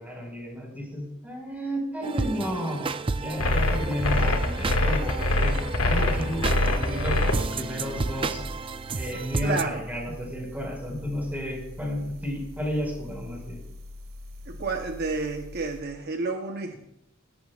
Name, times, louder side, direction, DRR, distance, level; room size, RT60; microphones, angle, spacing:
voice 1, 0.0-2.9 3.1-8.4 8.9-13.6, equal, 10° right, -1 dB, 4.6 m, -32 dB
sound 1, 2.0-9.6, right 4 dB, 25° right, 0.4 m, -32 dB
sound 2, 3.2-15.9, equal, 75° right, 2.0 m, -43 dB
sound 3, 3.4-7.3, left 2 dB, 85° left, 1.5 m, -24 dB
voice 2, 9.4-9.8 14.5-16.8, right 3 dB, 50° right, 4 dB, 0.8 m, -30 dB
17.5 x 14.0 x 2.3 m, 0.83 s
head